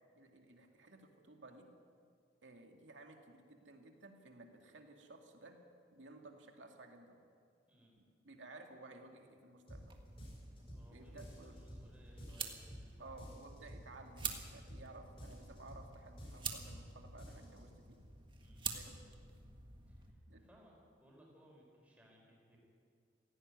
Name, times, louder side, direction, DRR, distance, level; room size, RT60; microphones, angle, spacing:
voice 1, 0.2-1.7 2.4-5.6 5.9-7.2 8.2-9.9 10.9-11.5 13.0-18.0 18.7-19.0 20.3-20.4, right 2 dB, 75° right, 3 dB, 2.4 m, -56 dB
sound 1, 9.7-9.9 10.2-10.9 11.2-11.9 12.2-12.9 13.2-13.9 14.2-14.9 15.2-15.9 16.2-16.9 17.2-17.6, equal, 30° left, 6.6 m, -51 dB
sound 2, 9.7-20.1, right 5 dB, 25° right, 1.7 m, -48 dB
voice 2, 10.5-13.2 18.4-18.6 19.9-20.7 21.0-22.6, equal, 10° right, -3 dB, 5.1 m, -64 dB
17.0 x 16.0 x 9.7 m, 2.2 s
head